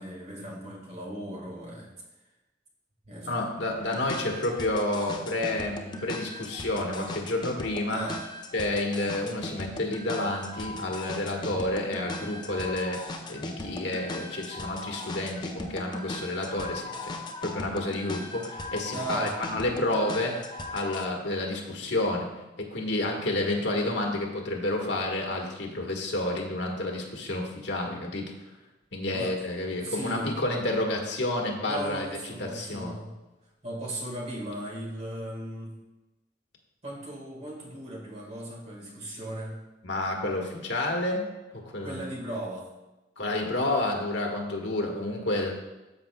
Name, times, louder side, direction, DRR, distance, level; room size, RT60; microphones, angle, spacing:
voice 1, 0.0-1.9 3.0-3.4 7.9-8.3 18.9-19.4 29.1-29.4 29.8-30.4 31.7-33.1 33.6-35.8 36.8-39.6 41.8-42.7, right 1 dB, 35° right, -2 dB, 1.7 m, -37 dB
voice 2, 3.2-8.0 8.5-13.0 13.3-20.4 20.7-22.3 22.6-28.3 28.9-32.0 32.4-33.0 39.8-41.3 41.5-42.0 43.2-45.5, left 2 dB, 75° left, 0 dB, 1.4 m, -30 dB
sound 1, 3.8-21.1, left 2 dB, 25° left, 0.5 m, -39 dB
13.0 x 5.4 x 2.3 m, 1.0 s
head